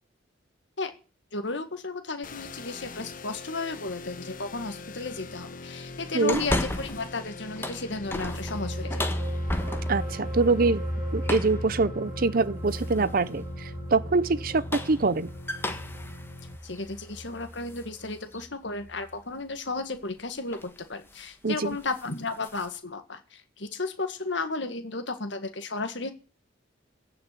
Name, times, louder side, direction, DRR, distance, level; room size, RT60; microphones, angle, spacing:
voice 1, 1.3-9.1 16.6-26.1, left 3 dB, 65° left, 1.9 m, -34 dB
sound 1, 2.2-16.6, left 2 dB, 45° left, 1.0 m, -42 dB
sound 2, 6.3-7.1 7.5-10.2 11.2-11.7 12.7-13.1 14.4-17.9 18.3-18.4 20.0-20.2 20.5-20.8 21.1-21.3 21.7-22.7, left 1 dB, 10° left, 1.4 m, -34 dB
sound 3, 7.8-18.5 18.8-19.0, equal, 20° right, 2.9 m, -36 dB
voice 2, 9.9-10.8 11.1-15.3 21.4-21.8, right 3 dB, 45° right, 0.6 m, -24 dB
16.0 x 5.9 x 9.8 m
head